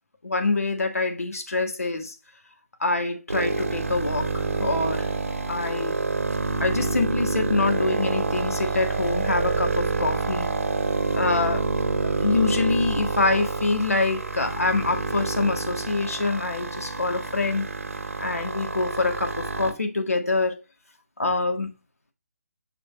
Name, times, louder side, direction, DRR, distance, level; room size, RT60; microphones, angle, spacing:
voice 1, 0.2-2.1 2.8-5.1 5.5-6.0 6.6-10.5 11.1-11.6 11.9-17.7 18.2-20.6 21.2-21.7, left 3 dB, 70° left, 1.8 m, -25 dB
sound 1, 3.3-19.7, right 3 dB, 65° right, 1.6 m, -27 dB
7.2 x 5.1 x 3.2 m
figure-of-eight pair, 150°, 8 cm